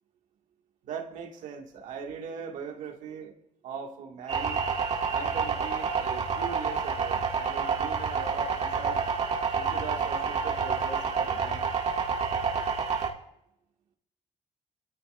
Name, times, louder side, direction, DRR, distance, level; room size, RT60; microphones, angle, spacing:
voice 1, 0.8-3.4 3.6-4.7 5.1-9.0 9.5-11.7, right 6 dB, 80° right, 2 dB, 2.2 m, -40 dB
sound 1, 4.3-13.1, right 5 dB, 60° right, 2.3 m, -28 dB
24.5 x 14.5 x 2.6 m, 0.79 s
cardioid pair, 70°, 13 cm